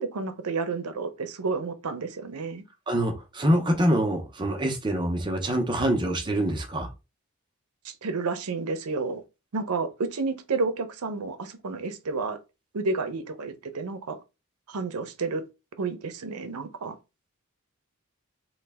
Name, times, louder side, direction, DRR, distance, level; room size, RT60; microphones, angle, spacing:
voice 1, 0.0-2.6 7.8-9.2 9.5-12.4 12.7-14.2 14.7-15.4 15.8-17.0, right 4 dB, 85° right, 0.6 m, -30 dB
voice 2, 2.9-6.9, right 1 dB, 20° right, 0.6 m, -25 dB
3.2 x 2.2 x 3.4 m
head